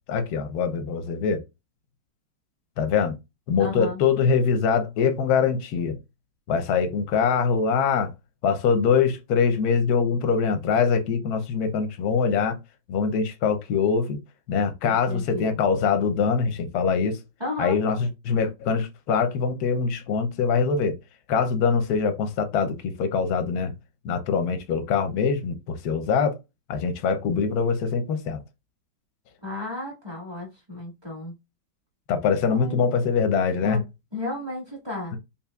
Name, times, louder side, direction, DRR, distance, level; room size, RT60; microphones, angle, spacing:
voice 1, 0.1-1.4 2.8-3.1 3.5-6.0 6.5-8.1 8.4-12.6 12.9-14.2 14.5-17.2 17.6-21.0 21.3-23.7 24.0-26.4 26.7-28.4 32.1-33.8, left 6 dB, 65° left, 1.0 m, -23 dB
voice 2, 3.6-4.0 14.9-15.6 17.4-17.8 29.4-31.3 32.5-32.9 33.6-33.8 34.1-35.2, left 2 dB, 15° right, 1.2 m, -33 dB
4.3 x 3.6 x 2.3 m
omnidirectional pair, 2.2 m